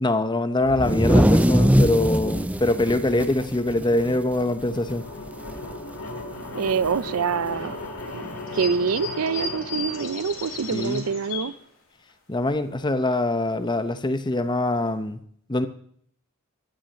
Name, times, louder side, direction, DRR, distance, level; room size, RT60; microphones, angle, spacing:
voice 1, 0.0-5.1 10.7-11.0 12.3-15.2 15.5-15.7, left 2 dB, 20° left, 0.8 m, -23 dB
sound 1, 0.7-4.4 4.7-4.9 5.3-5.7 6.8-6.9 8.0-8.1, equal, 5° right, 0.5 m, -21 dB
sound 2, 3.7-11.5, left 2 dB, 85° left, 2.9 m, -37 dB
sound 3, 5.0-5.3 5.9-6.0 7.0-7.1 8.5-11.6 12.1-12.2 12.4-12.6 13.0-13.3 13.9-14.0 14.3-14.5 14.9-15.0, left 4 dB, 60° left, 3.9 m, -36 dB
voice 2, 6.5-7.8 8.1-8.2 8.5-11.5, right 6 dB, 80° right, 0.5 m, -25 dB
13.0 x 6.4 x 8.9 m
head